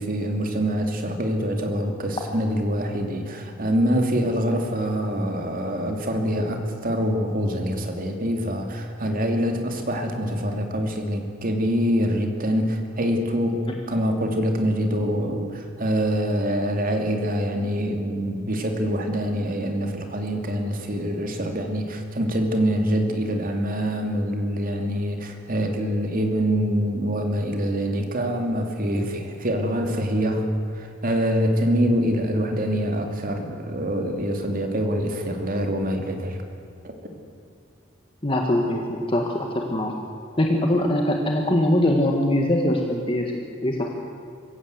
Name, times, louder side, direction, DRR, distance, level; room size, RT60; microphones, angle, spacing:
voice 1, 0.0-13.6 13.9-30.5 30.7-36.4 36.8-37.0, equal, 45° right, 4 dB, 2.7 m, -25 dB
voice 2, 38.2-39.9 40.4-43.3 43.6-43.9, left 1 dB, 25° left, 1 dB, 1.7 m, -22 dB
24.5 x 15.5 x 8.1 m, 2.4 s
head